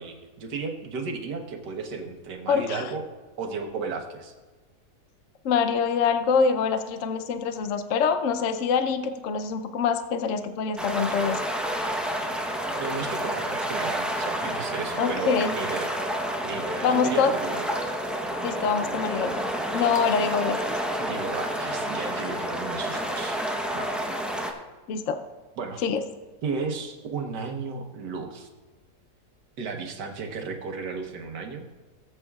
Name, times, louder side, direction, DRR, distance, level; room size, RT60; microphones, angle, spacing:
voice 1, 0.0-3.0 3.4-4.3 12.7-15.9 16.4-17.7 21.0-23.4 23.7-24.0 25.6-25.8 26.4-28.5 29.6-31.7, right 4 dB, 75° right, 3 dB, 1.7 m, -34 dB
voice 2, 2.5-2.8 5.4-11.4 15.0-15.5 16.8-17.3 18.4-19.4 19.7-20.8 24.9-25.2 25.8-26.0, left 6 dB, 60° left, 8 dB, 0.8 m, -25 dB
sound 1, 10.8-24.5, right 1 dB, ahead, 0.3 m, -29 dB
18.0 x 8.2 x 2.4 m, 1.3 s
omnidirectional pair, 1.8 m